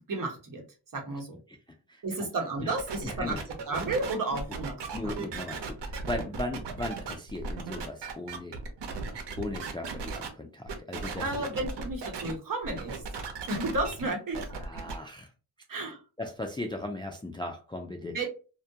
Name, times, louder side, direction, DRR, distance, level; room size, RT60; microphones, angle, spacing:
voice 1, 0.1-0.6 0.9-1.4 2.0-3.4 3.7-4.8 5.0-5.2 11.2-13.0 13.5-14.5 15.7-16.0 18.0-18.3, right 2 dB, 50° right, 1 dB, 0.9 m, -32 dB
voice 2, 1.9-2.3 2.6-2.7 3.0-3.4 4.9-8.5 9.4-11.2 14.5-15.3 16.2-18.2, left 2 dB, 15° left, 3 dB, 0.3 m, -37 dB
sound 1, 2.8-10.3 10.7-12.3 12.6-14.9, right 4 dB, 80° right, 0.7 m, -37 dB
2.2 x 2.1 x 2.7 m, 0.34 s
cardioid pair, 80°, 41 cm